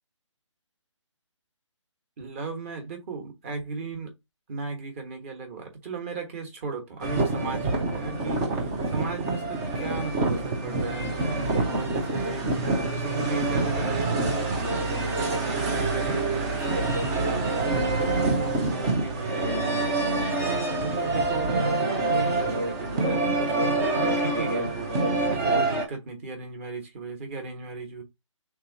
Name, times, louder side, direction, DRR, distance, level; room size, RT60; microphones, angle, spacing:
voice 1, 2.2-4.1 4.5-11.1 11.6-19.8 20.4-24.7 25.3-28.0, right 3 dB, 25° right, 1.1 m, -36 dB
sound 1, 7.0-25.9, right 2 dB, 10° right, 0.3 m, -26 dB
3.5 x 2.7 x 3.8 m
figure-of-eight pair, 155°, 16 cm